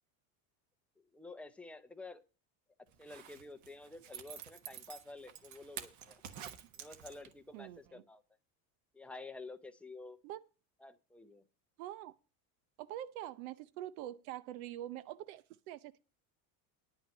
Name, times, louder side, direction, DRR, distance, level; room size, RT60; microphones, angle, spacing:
voice 1, 1.1-2.2 3.0-6.2 6.7-8.2 8.9-10.2 10.8-11.4, left 3 dB, 5° left, 0.5 m, -50 dB
Zipper (clothing), 2.9-7.5 7.9-8.0, right 9 dB, 45° right, 1.3 m, -49 dB
voice 2, 7.5-8.0 10.2-10.4 11.8-12.1 12.8-16.0, right 13 dB, 85° right, 0.8 m, -45 dB
10.0 x 5.7 x 8.3 m
cardioid pair, 160°, 42 cm